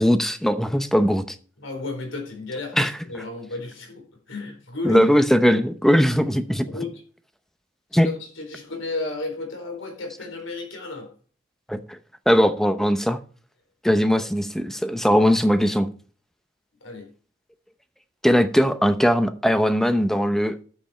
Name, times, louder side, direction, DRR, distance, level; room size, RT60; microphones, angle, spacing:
voice 1, 0.0-1.4 2.8-3.2 4.8-6.7 7.9-8.1 11.7-12.0 12.3-13.2 13.8-15.9 18.2-20.6, equal, ahead, 0.7 m, -20 dB
voice 2, 1.6-2.8 3.0-5.1 6.6-7.0 7.9-11.1 14.1-14.2 16.8-17.1, left 3 dB, 90° left, 4.2 m, -33 dB
10.0 x 7.8 x 4.4 m
head